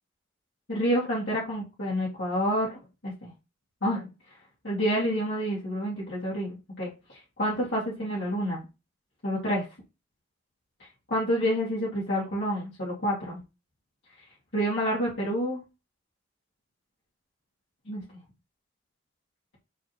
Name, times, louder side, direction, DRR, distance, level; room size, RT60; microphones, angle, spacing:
voice 1, 0.7-3.3 3.8-4.1 4.6-8.6 9.2-9.6 11.1-13.4 14.5-15.6 17.9-18.0, equal, 65° left, -8 dB, 2.6 m, -28 dB
9.1 x 3.8 x 3.0 m, 0.28 s
head